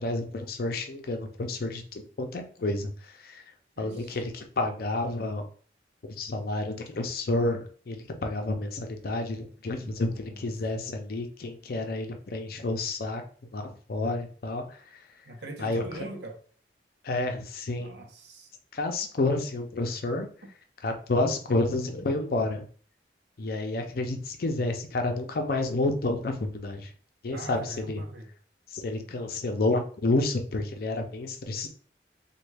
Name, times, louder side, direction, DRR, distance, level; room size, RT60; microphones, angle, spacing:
voice 1, 0.0-3.4 3.8-5.4 6.0-13.2 13.5-14.8 15.6-15.8 17.0-17.9 18.7-20.3 20.8-22.6 23.4-26.9 27.2-28.0 28.7-31.7, left 2 dB, 55° left, 5 dB, 0.5 m, -30 dB
voice 2, 3.8-4.2 9.8-10.4 15.3-16.4 17.8-18.5 27.3-28.3, right 2 dB, 75° right, 3 dB, 0.6 m, -42 dB
3.1 x 2.2 x 3.3 m, 0.44 s
head